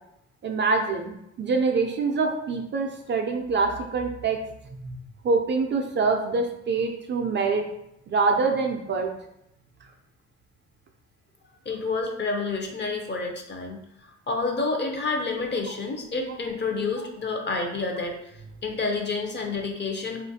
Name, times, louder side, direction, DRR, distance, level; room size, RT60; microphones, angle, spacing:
voice 1, 0.4-4.4 4.8-7.7 8.1-9.1 17.0-17.1, right 4 dB, 40° right, 3 dB, 0.4 m, -25 dB
voice 2, 11.7-13.8 14.0-18.2 18.6-20.2, left 3 dB, 35° left, 2 dB, 0.6 m, -29 dB
3.1 x 2.4 x 2.7 m, 0.79 s
cardioid pair, 90°, 30 cm